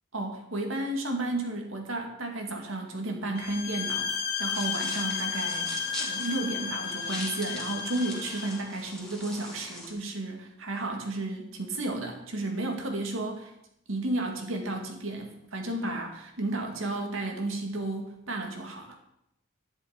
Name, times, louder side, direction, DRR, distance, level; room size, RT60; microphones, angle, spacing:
voice 1, 0.1-13.5 13.9-19.0, right 2 dB, 75° right, 2 dB, 2.2 m, -33 dB
sound 1, 3.4-8.6, left 6 dB, 50° left, 1.3 m, -33 dB
sound 2, 4.5-9.9, left 1 dB, 5° left, 2.4 m, -41 dB
10.5 x 10.5 x 5.2 m, 0.80 s
head